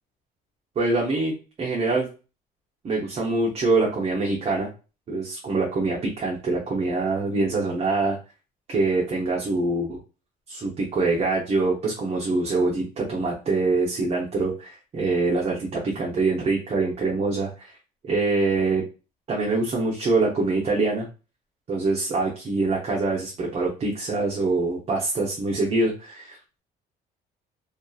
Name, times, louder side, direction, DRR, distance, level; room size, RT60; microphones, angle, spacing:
voice 1, 0.8-2.1 2.8-4.7 5.1-8.2 8.7-10.0 10.5-17.7 18.0-18.8 19.3-21.1 21.7-26.4, right 3 dB, 40° right, -3 dB, 0.7 m, -24 dB
2.7 x 2.4 x 2.3 m, 0.33 s
cardioid pair, 110°, 17 cm